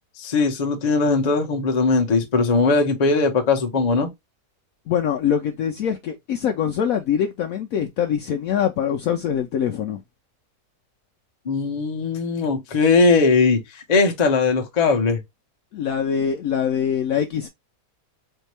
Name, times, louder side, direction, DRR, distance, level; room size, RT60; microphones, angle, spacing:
voice 1, 0.2-4.1 11.4-15.2, left 4 dB, 35° left, 0.7 m, -19 dB
voice 2, 4.9-10.0 15.7-17.5, left 8 dB, 70° left, 0.8 m, -23 dB
4.4 x 2.7 x 3.2 m
omnidirectional pair, 1.8 m